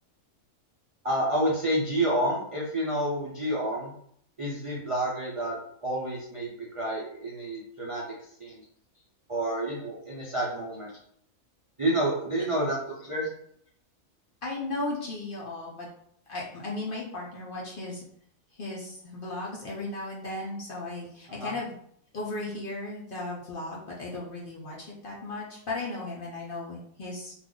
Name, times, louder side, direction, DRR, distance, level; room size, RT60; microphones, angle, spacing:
voice 1, 1.0-3.9 4.4-6.5 6.7-8.0 8.4-8.6 9.3-10.9 11.8-13.3 21.4-21.5, right 1 dB, 45° right, -5 dB, 0.4 m, -29 dB
voice 2, 14.4-15.9 16.3-18.0 18.5-21.7 22.1-27.3, left 2 dB, 50° left, -5 dB, 0.8 m, -36 dB
2.5 x 2.5 x 3.6 m, 0.66 s
omnidirectional pair, 1.5 m